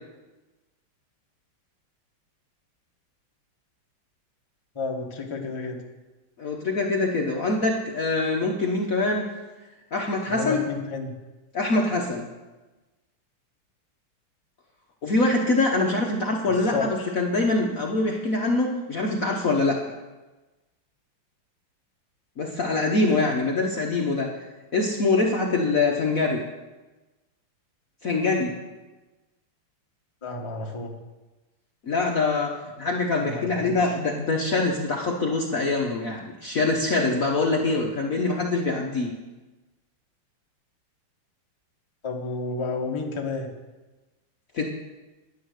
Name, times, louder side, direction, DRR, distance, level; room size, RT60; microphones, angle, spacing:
voice 1, 4.7-5.8 10.3-11.1 16.4-17.2 23.1-23.3 30.2-30.9 33.2-33.8 42.0-43.5, left 3 dB, 20° left, 0 dB, 1.0 m, -31 dB
voice 2, 6.4-9.3 9.9-10.6 11.5-12.3 15.0-19.8 22.4-24.3 24.7-26.4 28.0-28.6 31.8-39.1 44.5-44.6, left 3 dB, 50° left, 0 dB, 1.1 m, -24 dB
10.0 x 9.5 x 6.5 m, 1.2 s
omnidirectional pair, 2.4 m